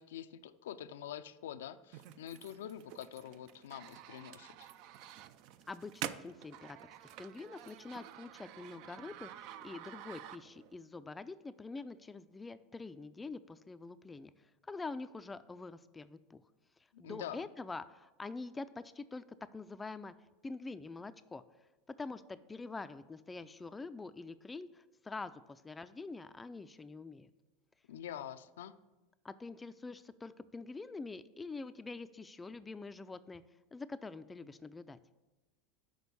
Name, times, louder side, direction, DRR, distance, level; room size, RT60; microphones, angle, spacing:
voice 1, 0.0-4.7 16.9-17.5 27.9-28.7, left 10 dB, 85° left, 13 dB, 0.4 m, -46 dB
sound 1, 1.9-10.8, right 11 dB, 60° right, 0.4 m, -49 dB
voice 2, 5.7-14.3 14.7-16.4 17.0-19.2 19.5-20.1 20.4-21.4 22.0-27.3 29.2-33.4 33.7-35.0, left 3 dB, 15° left, 13 dB, 0.3 m, -45 dB
6.2 x 5.0 x 6.8 m, 1.1 s
supercardioid pair, 110°, 0 cm